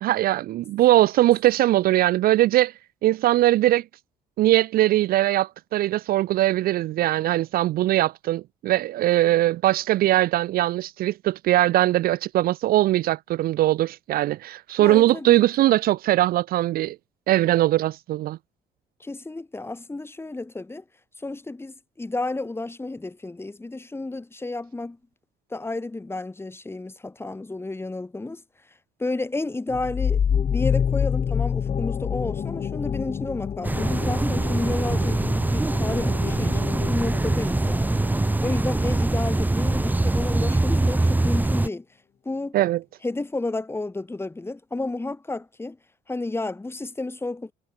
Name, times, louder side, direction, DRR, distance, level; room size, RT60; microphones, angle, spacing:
voice 1, 0.0-2.7 3.0-3.8 4.4-17.0 17.3-18.4 42.5-42.8, right 15 dB, 60° right, 0.4 m, -21 dB
voice 2, 14.8-15.4 19.0-20.8 21.2-25.0 25.5-28.4 29.0-30.2 30.5-38.0 38.4-41.9 42.3-42.6 43.0-45.8 46.1-47.5, left 2 dB, 15° left, 5.6 m, -31 dB
sound 1, 29.7-39.1, left 7 dB, 35° left, 0.8 m, -28 dB
sound 2, 33.6-41.7, right 2 dB, 10° right, 1.3 m, -23 dB
cardioid pair, 110°, 17 cm